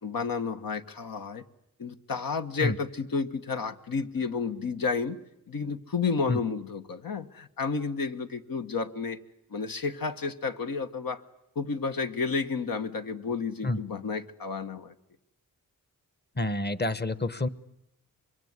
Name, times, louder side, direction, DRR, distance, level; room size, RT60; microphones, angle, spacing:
voice 1, 0.0-1.4 1.8-5.2 5.5-9.2 9.5-11.2 11.5-14.9, left 5 dB, 75° left, 7 dB, 1.6 m, -31 dB
voice 2, 16.4-17.5, left 2 dB, 30° left, 17 dB, 1.2 m, -28 dB
25.0 x 22.5 x 9.7 m, 0.83 s
wide cardioid pair, 75°, 34 cm